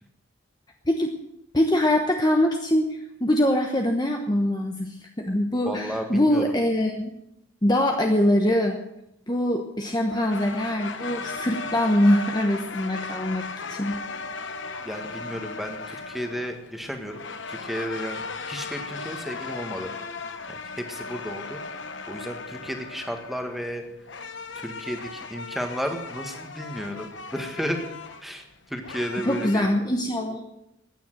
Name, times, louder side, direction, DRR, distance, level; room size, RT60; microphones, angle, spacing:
voice 1, 1.5-7.1 7.6-8.8 9.3-13.4 13.7-13.9 29.2-30.4, left 1 dB, 20° left, 2 dB, 1.0 m, -23 dB
voice 2, 5.6-6.4 14.8-17.2 17.5-20.2 20.5-21.8 22.1-23.8 24.5-27.8 28.2-29.6, equal, ahead, 4 dB, 1.7 m, -33 dB
sound 1, 10.1-29.5, left 4 dB, 60° left, 1.1 m, -37 dB
15.0 x 10.0 x 7.9 m, 0.84 s
head